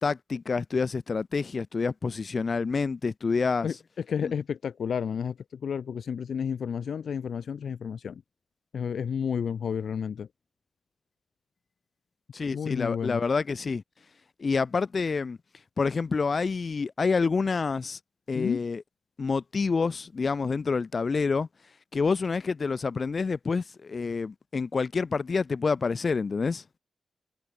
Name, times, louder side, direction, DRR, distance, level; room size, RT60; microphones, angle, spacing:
voice 1, 0.0-3.7 4.2-4.3 12.3-13.8 14.4-15.4 15.8-18.0 18.3-18.8 19.2-21.5 21.9-26.6, left 4 dB, 45° left, 2.3 m, -27 dB
voice 2, 3.6-8.2 8.7-10.3 12.5-13.2 18.3-18.6, left 7 dB, 75° left, 0.9 m, -31 dB
wide cardioid pair, 95°, 0 cm